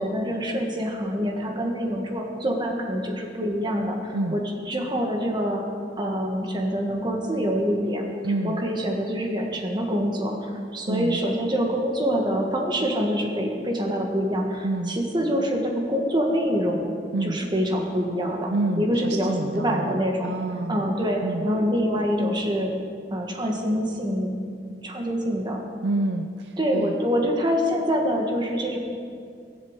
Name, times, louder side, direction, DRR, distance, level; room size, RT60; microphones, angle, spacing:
voice 1, 0.0-5.7 6.0-8.1 8.4-16.9 17.2-20.3 20.7-22.7 23.1-24.3 24.8-25.6 26.6-28.8, equal, 25° right, 1 dB, 1.6 m, -25 dB
voice 2, 8.2-8.6 10.9-11.2 14.6-15.0 17.1-17.4 18.5-20.9 21.2-21.5 25.8-27.0, right 2 dB, 70° right, 5 dB, 0.6 m, -28 dB
17.0 x 7.7 x 8.0 m, 2.3 s
head